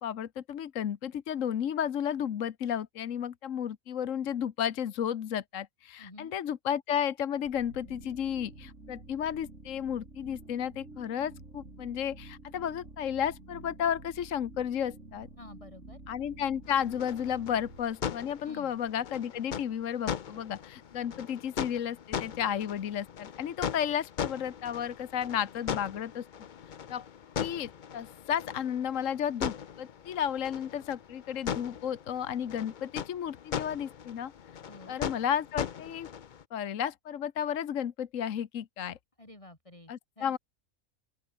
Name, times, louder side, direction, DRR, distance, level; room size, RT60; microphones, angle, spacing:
voice 1, 0.0-15.3 16.1-26.3 26.9-27.1 27.4-34.3 34.9-36.1 36.5-39.0 39.9-40.4, left 9 dB, 70° left, 1.3 m, -33 dB
voice 2, 6.0-6.3 15.4-16.0 18.4-18.7 34.7-35.0 39.2-40.4, left 1 dB, 25° left, 4.4 m, -50 dB
sound 1, 7.4-19.2, right 2 dB, 65° right, 4.9 m, -50 dB
sound 2, 16.6-36.4, left 8 dB, 45° left, 0.7 m, -39 dB
open air
omnidirectional pair, 1.4 m